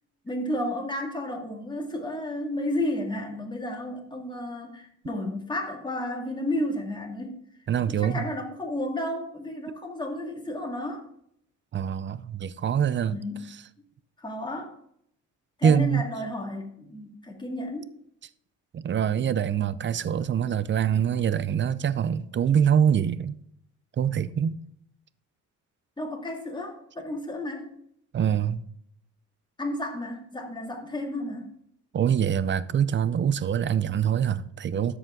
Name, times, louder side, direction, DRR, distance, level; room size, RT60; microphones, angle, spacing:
voice 1, 0.2-7.4 7.9-11.1 13.1-13.5 14.2-14.7 15.6-17.9 26.0-27.7 29.6-31.6, left 1 dB, 15° left, 2.2 m, -32 dB
voice 2, 7.7-8.3 11.7-13.2 15.6-16.0 18.7-23.4 24.0-24.6 28.1-28.6 31.9-35.0, right 8 dB, 40° right, 0.5 m, -24 dB
13.0 x 5.0 x 3.7 m
cardioid pair, 90°, 30 cm